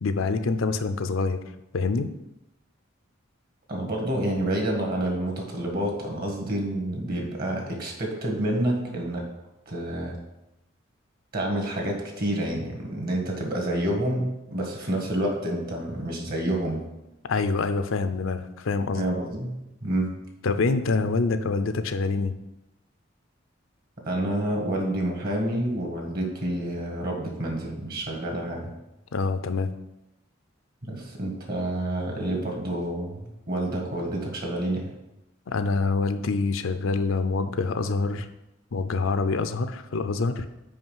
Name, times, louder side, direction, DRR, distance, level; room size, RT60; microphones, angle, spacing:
voice 1, 0.0-1.4 1.7-2.1 17.3-19.0 20.4-22.3 29.1-29.7 35.5-38.3 38.7-40.5, left 4 dB, 80° left, 9 dB, 0.5 m, -26 dB
voice 2, 3.7-9.3 9.7-10.2 11.3-16.8 18.9-20.1 24.0-28.7 30.8-34.9, right 1 dB, 50° right, 1 dB, 1.7 m, -28 dB
5.6 x 5.0 x 5.5 m, 0.94 s
head